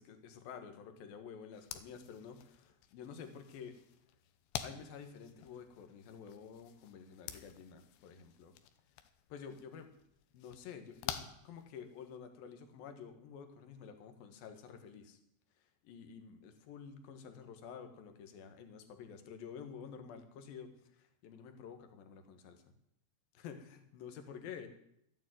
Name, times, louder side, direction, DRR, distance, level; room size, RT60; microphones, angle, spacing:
voice 1, 0.0-3.7 4.6-8.5 9.3-9.9 10.3-15.2 15.8-22.6 23.3-24.7, left 7 dB, 65° left, 7 dB, 3.0 m, -50 dB
sound 1, 1.5-12.2, left 11 dB, 85° left, 3.1 m, -49 dB
13.5 x 9.3 x 9.2 m, 0.76 s
omnidirectional pair, 5.0 m